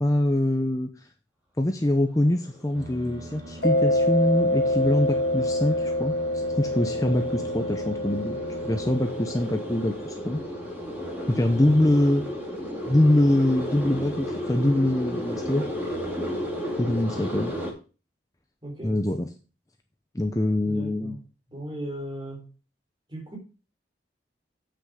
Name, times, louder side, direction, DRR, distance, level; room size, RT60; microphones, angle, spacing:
voice 1, 0.0-0.9 1.6-10.4 11.3-12.2 12.9-15.7 16.8-17.5 18.8-19.3 20.1-21.2, left 1 dB, 20° left, 0.7 m, -24 dB
sound 1, 2.2-17.7, equal, 10° right, 2.5 m, -34 dB
sound 2, 2.7-9.0, right 1 dB, 70° right, 2.0 m, -42 dB
Mallet percussion, 3.6-10.0, left 1 dB, 55° left, 0.9 m, -26 dB
voice 2, 18.6-19.0 20.7-21.2 21.5-22.5 23.1-23.4, right 1 dB, 25° right, 3.7 m, -37 dB
8.1 x 6.3 x 6.3 m
head